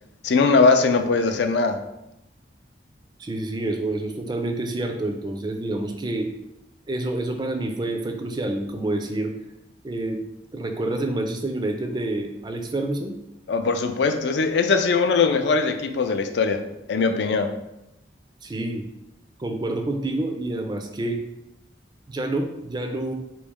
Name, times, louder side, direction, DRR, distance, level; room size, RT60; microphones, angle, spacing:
voice 1, 0.2-1.8 13.5-16.6 16.9-17.5, left 4 dB, 70° left, 7 dB, 0.4 m, -20 dB
voice 2, 3.2-6.3 6.9-9.3 9.8-10.2 10.5-13.2 18.4-18.9 19.4-21.2 22.1-23.1, right 2 dB, 25° right, 5 dB, 0.4 m, -28 dB
4.4 x 3.0 x 3.5 m, 0.89 s
head